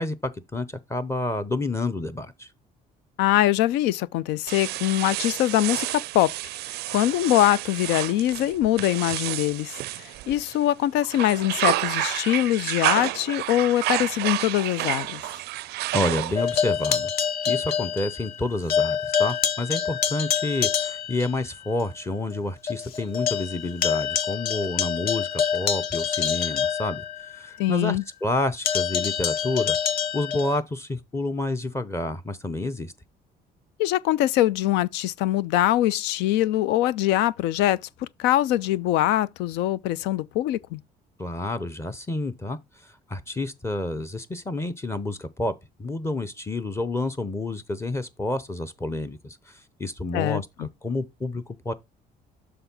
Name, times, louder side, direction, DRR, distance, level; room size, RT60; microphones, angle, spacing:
voice 1, 0.0-2.5 15.9-17.1 17.5-27.0 27.3-29.8 30.1-32.9 41.2-42.6 42.8-45.5 45.8-51.7, left 2 dB, 15° left, 0.7 m, -29 dB
voice 2, 3.2-6.3 6.7-15.2 27.6-28.0 33.8-40.8 50.1-50.7, left 14 dB, 90° left, 0.4 m, -23 dB
sound 1, 4.5-10.6 11.0-16.6, right 17 dB, 75° right, 0.4 m, -30 dB
sound 2, 16.4-18.4 18.7-21.3 21.8-21.9 22.3-22.4 22.7-27.5 28.6-30.6, left 7 dB, 65° left, 1.0 m, -26 dB
7.0 x 3.6 x 5.4 m
cardioid pair, 110°, 17 cm